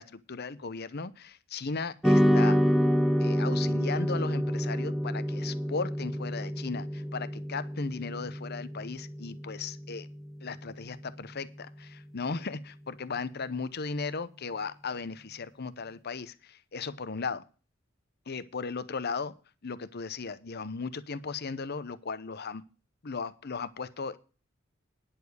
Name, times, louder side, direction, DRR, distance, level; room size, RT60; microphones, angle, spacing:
voice 1, 0.0-2.6 3.2-10.1 10.4-17.4 18.3-19.3 19.6-22.6 23.0-24.2, left 4 dB, 55° left, 15 dB, 0.8 m, -36 dB
sound 1, 2.0-10.6, equal, ahead, 0.5 m, -28 dB
10.5 x 7.1 x 6.4 m, 0.35 s
head